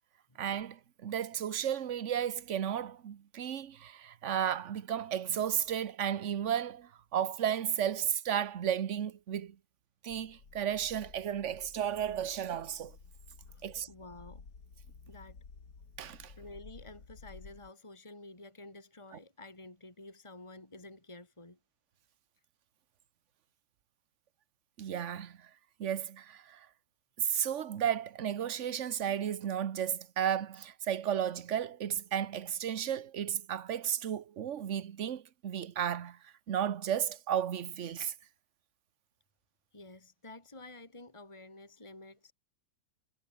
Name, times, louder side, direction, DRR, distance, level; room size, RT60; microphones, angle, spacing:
voice 1, 0.4-9.6 10.0-13.0 13.6-13.9 16.0-16.3 24.8-25.5 25.8-26.7 27.2-38.1, right 9 dB, 50° right, 1.3 m, -33 dB
sound 1, 10.1-17.7, left 4 dB, 85° left, 3.3 m, -54 dB
voice 2, 13.5-14.5 15.1-15.4 16.4-21.6 39.7-42.3, left 2 dB, 20° left, 3.1 m, -51 dB
omnidirectional pair, 1.7 m